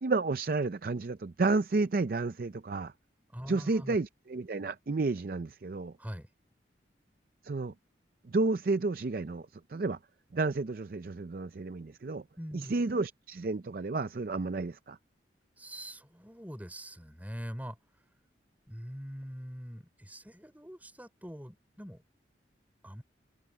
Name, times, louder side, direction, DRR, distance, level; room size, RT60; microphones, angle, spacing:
voice 1, 0.0-2.9 3.5-5.9 7.4-7.7 8.3-10.0 10.3-12.2 12.5-15.0, right 3 dB, 50° right, 0.5 m, -31 dB
voice 2, 3.3-4.0 6.0-6.3 12.4-12.7 15.6-17.8 18.7-22.0 22.8-23.0, equal, 10° right, 5.3 m, -43 dB
head